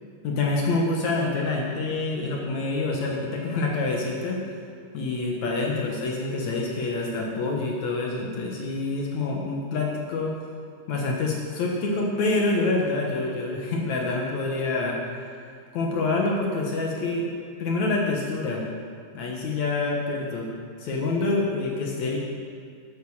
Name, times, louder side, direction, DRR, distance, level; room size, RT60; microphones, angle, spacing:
voice 1, 0.2-4.4 4.9-10.3 10.9-15.3 15.7-17.3 17.6-18.7 19.1-20.5 20.8-22.2, left 3 dB, 70° left, -1 dB, 1.7 m, -26 dB
13.5 x 8.6 x 6.4 m, 2.3 s
omnidirectional pair, 5.3 m